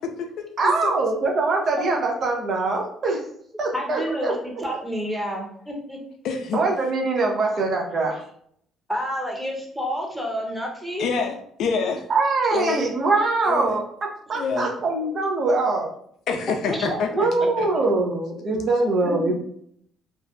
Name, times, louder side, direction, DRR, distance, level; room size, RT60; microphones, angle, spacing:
voice 1, 0.6-3.2 3.6-4.3 6.5-8.2 12.1-13.8 14.3-15.9 17.1-19.3, right 3 dB, 55° right, 0 dB, 0.6 m, -23 dB
voice 2, 3.7-6.0 8.9-11.1 11.8-11.9 16.7-17.5 19.0-19.3, equal, 5° right, -1 dB, 0.8 m, -30 dB
voice 3, 6.2-6.6 11.0-12.0 12.5-12.9 13.5-13.7 14.3-14.7 16.3-17.7, left 5 dB, 70° left, 5 dB, 0.3 m, -26 dB
2.5 x 2.1 x 2.4 m, 0.68 s
supercardioid pair, 70°, 0 cm